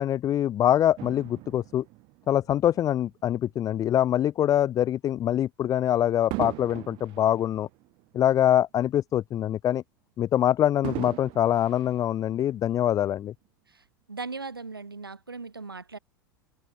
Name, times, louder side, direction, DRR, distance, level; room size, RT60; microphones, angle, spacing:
voice 1, 0.0-1.8 2.3-7.7 8.1-9.8 10.2-13.3, left 11 dB, 30° left, 0.8 m, -24 dB
Fireworks, 1.0-3.6 4.2-4.4 6.3-8.8 9.2-9.3 10.8-12.7 13.5-13.6, right 23 dB, 45° right, 1.3 m, -40 dB
voice 2, 13.7-16.0, right 4 dB, 80° right, 1.7 m, -39 dB
figure-of-eight pair, 80°, 12 cm